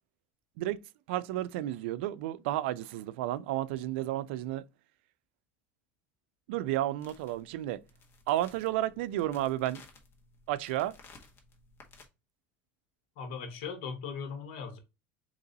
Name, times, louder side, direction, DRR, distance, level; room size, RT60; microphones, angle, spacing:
voice 1, 1.1-4.6 6.5-7.8 8.3-9.8 10.5-11.0, right 14 dB, 80° right, 0.4 m, -32 dB
sound 1, 7.0-12.1, left 4 dB, 45° left, 1.4 m, -57 dB
voice 2, 13.2-14.8, left 6 dB, 75° left, 1.4 m, -39 dB
3.8 x 3.0 x 4.0 m
supercardioid pair, 105°, 6 cm